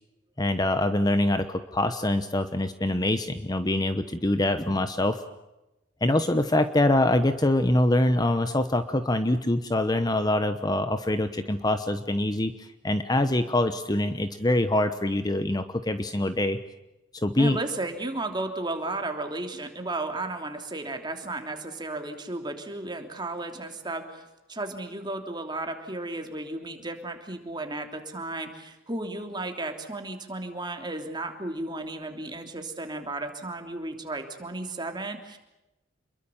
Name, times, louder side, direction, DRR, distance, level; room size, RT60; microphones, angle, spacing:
voice 1, 0.4-5.2 6.0-16.6 17.1-17.6, left 1 dB, 20° left, 10 dB, 1.0 m, -24 dB
voice 2, 17.4-24.2 24.5-35.4, right 2 dB, 25° right, 4 dB, 3.1 m, -34 dB
28.0 x 22.5 x 7.2 m, 0.98 s
head